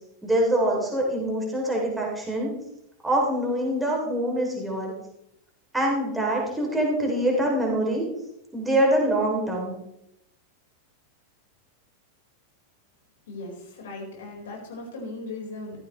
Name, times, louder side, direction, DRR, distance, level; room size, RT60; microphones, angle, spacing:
voice 1, 0.2-2.5 3.0-4.9 5.7-8.0 8.5-9.7, right 1 dB, 5° right, -2 dB, 3.3 m, -24 dB
voice 2, 13.3-15.8, left 2 dB, 60° left, -1 dB, 4.8 m, -38 dB
14.5 x 13.5 x 3.3 m, 0.84 s
figure-of-eight pair, 90°, 0 cm